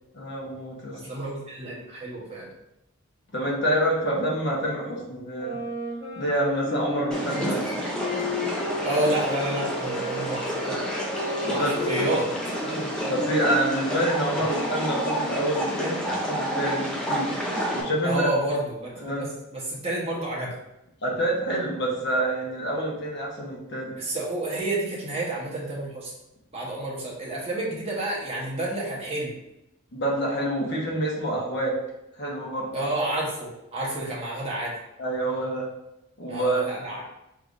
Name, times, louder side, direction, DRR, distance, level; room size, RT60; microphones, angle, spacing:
voice 1, 0.1-1.0 3.3-5.6 6.2-7.6 11.4-11.9 12.6-17.3 17.7-18.3 19.0-19.3 21.0-23.9 29.9-31.7 32.2-32.7 35.0-35.7 36.2-36.6, right 1 dB, 50° left, -3 dB, 1.1 m, -27 dB
voice 2, 0.9-2.5 7.3-7.5 8.8-10.8 11.5-12.3 14.3-14.6 18.0-18.9 19.2-20.5 24.0-26.1 26.5-29.4 32.7-34.7 36.3-37.0, right 1 dB, 30° right, -5 dB, 1.1 m, -29 dB
sound 1, 5.4-12.1 12.5-15.5, left 2 dB, 25° left, 1.4 m, -34 dB
sound 2, 7.1-17.8, equal, 5° left, 0.6 m, -30 dB
4.7 x 3.5 x 2.6 m, 0.88 s
head